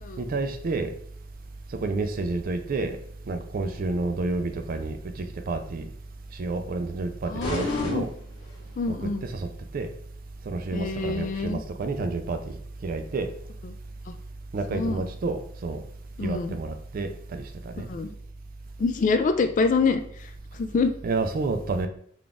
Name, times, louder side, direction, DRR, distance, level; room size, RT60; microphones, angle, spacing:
voice 1, 0.2-0.9 1.7-3.0 3.3-5.9 6.3-8.1 9.0-9.5 9.7-9.9 10.5-13.3 14.5-15.8 16.2-17.9 21.0-21.9, right 3 dB, 45° right, 8 dB, 0.4 m, -30 dB
voice 2, 7.3-8.0 8.8-9.2 10.7-11.6 13.6-13.8 14.7-15.0 16.2-16.6 17.9-18.1 18.8-20.9, left 4 dB, 40° left, 9 dB, 0.3 m, -26 dB
sound 1, 7.4-8.9, left 1 dB, 80° left, 1.3 m, -33 dB
3.8 x 2.4 x 3.4 m, 0.63 s
head